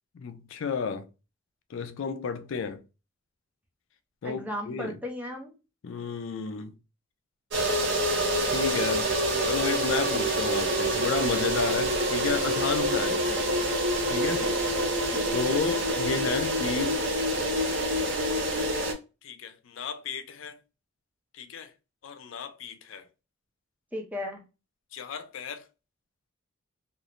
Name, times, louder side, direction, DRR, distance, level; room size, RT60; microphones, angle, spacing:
voice 1, 0.1-1.1 1.7-2.8 4.2-5.0 5.8-6.7 8.4-9.1 9.4-13.2 14.1-14.5 15.3-17.0 19.2-20.6 21.4-21.7 22.0-23.0 24.9-25.6, left 5 dB, 70° left, 0.4 m, -32 dB
voice 2, 4.2-5.5 13.1-13.5 14.4-14.7 15.1-15.4 23.9-24.4, left 1 dB, 5° right, 0.5 m, -36 dB
sound 1, 7.5-18.9, right 1 dB, 55° right, 0.6 m, -26 dB
3.0 x 2.0 x 2.4 m
head